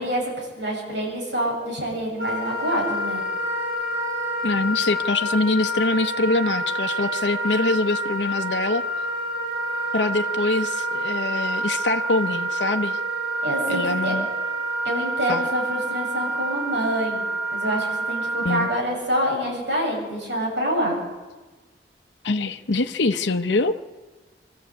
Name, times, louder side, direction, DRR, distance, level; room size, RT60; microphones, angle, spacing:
voice 1, 0.0-3.2 13.4-14.1 14.8-17.2 17.5-21.0, equal, 80° right, -2 dB, 7.7 m, -26 dB
Wind instrument woodwind instrument, 2.2-18.8, right 1 dB, 65° right, 6.7 m, -27 dB
voice 2, 4.4-8.8 9.9-13.0 13.7-14.3 15.3-15.5 18.4-18.7 22.2-23.8, left 3 dB, 75° left, 6 dB, 0.8 m, -24 dB
24.5 x 14.5 x 8.3 m, 1.3 s
head